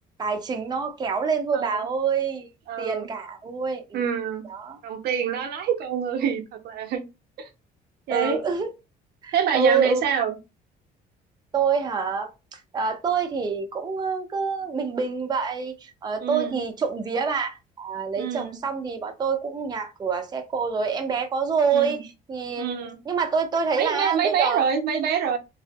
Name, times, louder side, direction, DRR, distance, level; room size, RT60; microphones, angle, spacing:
voice 1, 0.2-2.5 2.8-4.0 4.5-4.8 8.1-8.7 9.2-10.0 11.5-24.6, right 5 dB, 25° right, 0.5 m, -26 dB
voice 2, 1.5-1.9 2.7-3.1 3.9-4.5 4.8-7.0 7.4-7.5 8.1-8.4 9.3-10.4 16.2-16.6 18.2-18.6 21.7-22.0 22.6-23.0 23.8-25.4, right 7 dB, 70° right, 0.6 m, -26 dB
2.5 x 2.4 x 2.3 m
cardioid pair, 110°, 17 cm